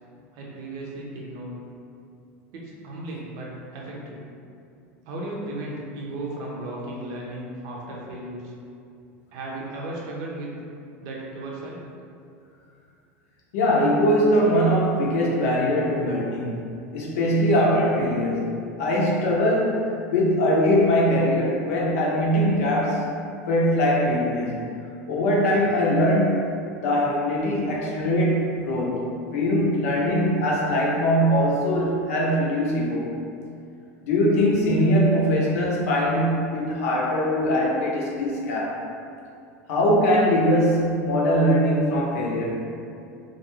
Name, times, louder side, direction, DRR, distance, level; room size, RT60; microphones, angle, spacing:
voice 1, 0.3-1.6 2.5-4.3 5.1-8.5 9.3-10.5 11.0-11.8, right 1 dB, 55° right, -3 dB, 0.6 m, -35 dB
voice 2, 13.5-23.0 23.5-24.6 25.1-26.5 26.8-29.1 29.3-33.1 34.0-38.8 39.7-42.6, equal, 75° left, -3 dB, 0.6 m, -22 dB
2.4 x 2.2 x 3.0 m, 2.5 s
hypercardioid pair, 95°, 8 cm